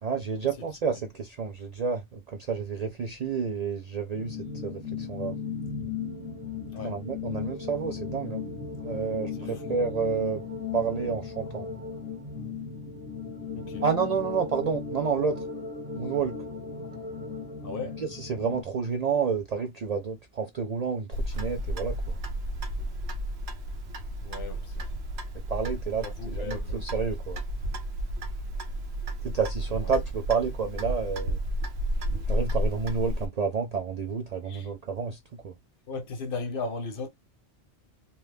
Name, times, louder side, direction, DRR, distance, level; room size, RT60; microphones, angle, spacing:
voice 1, 0.0-5.3 6.8-8.4 8.8-10.4 10.7-11.7 13.8-15.4 16.0-16.4 18.0-22.2 25.5-26.1 26.3-27.4 29.2-31.4 32.3-35.5, right 6 dB, 60° right, 0.4 m, -30 dB
sound 1, 4.1-18.6, left 5 dB, 15° right, 0.8 m, -36 dB
voice 2, 9.4-9.8 13.5-13.8 17.6-18.0 24.2-24.9 26.0-26.9 29.8-29.9 34.4-34.7 35.9-37.1, left 3 dB, 60° left, 0.8 m, -37 dB
Clock, 21.1-33.3, equal, 75° right, 1.0 m, -32 dB
2.8 x 2.3 x 3.3 m
omnidirectional pair, 1.1 m